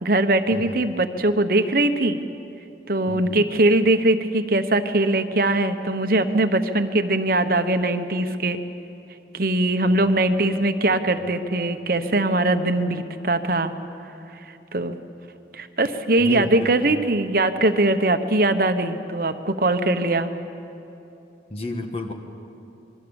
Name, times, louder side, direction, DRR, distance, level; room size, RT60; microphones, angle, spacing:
voice 1, 0.0-2.2 2.9-8.6 9.3-13.7 14.7-15.0 15.5-20.3, right 2 dB, 55° right, 8 dB, 1.1 m, -21 dB
voice 2, 3.1-3.5 9.8-10.3 16.2-17.1 21.5-22.1, left 1 dB, 35° left, 4 dB, 1.4 m, -33 dB
27.5 x 22.5 x 7.2 m, 2.9 s
head